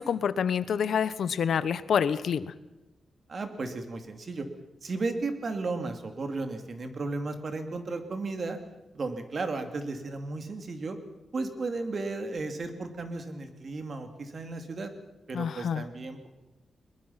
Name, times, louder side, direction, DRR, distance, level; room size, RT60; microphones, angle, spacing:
voice 1, 0.0-2.5 15.3-15.8, left 7 dB, 75° left, 15 dB, 0.9 m, -27 dB
voice 2, 3.3-4.5 4.8-8.6 8.9-11.0 11.3-14.9 15.3-16.3, right 3 dB, 45° right, 7 dB, 2.6 m, -34 dB
21.5 x 21.5 x 5.8 m, 1.0 s
wide cardioid pair, 140°, 0 cm